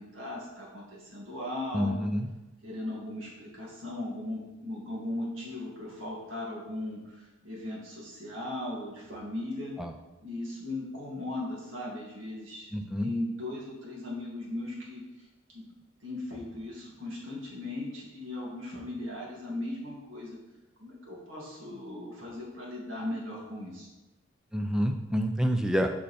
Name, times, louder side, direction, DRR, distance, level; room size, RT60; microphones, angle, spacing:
voice 1, 0.0-2.1 2.6-9.7 10.2-15.0 15.5-15.6 16.0-20.4 20.8-23.9, left 1 dB, 70° right, -5 dB, 2.1 m, -38 dB
voice 2, 1.7-2.3 9.8-9.9 12.7-13.1 24.5-25.9, equal, 5° right, 5 dB, 0.4 m, -28 dB
5.6 x 5.2 x 4.3 m, 1.0 s
head